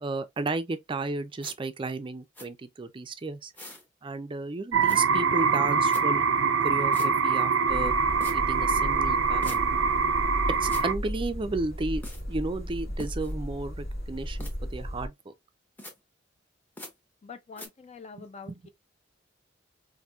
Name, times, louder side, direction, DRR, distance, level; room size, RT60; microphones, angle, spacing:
voice 1, 0.0-3.5 4.0-6.3 6.6-7.9 8.3-9.6 10.6-12.0 12.3-15.3 18.2-18.6, right 3 dB, 25° right, 0.4 m, -33 dB
sound 1, 1.4-1.5 2.3-2.5 3.5-3.8 4.9-5.0 5.9-6.0 6.9-7.1 8.2-8.4 9.4-9.6 10.7-10.9 12.0-12.2 13.0-13.3 14.4-14.5 15.8-15.9 16.8-16.9 17.6-17.7, left 1 dB, 10° left, 0.8 m, -42 dB
sound 2, 4.7-10.9, right 5 dB, 85° right, 0.5 m, -24 dB
sound 3, 7.7-15.1, equal, 55° left, 1.2 m, -35 dB
voice 2, 17.2-18.7, left 5 dB, 35° left, 0.4 m, -45 dB
4.2 x 2.6 x 2.3 m
head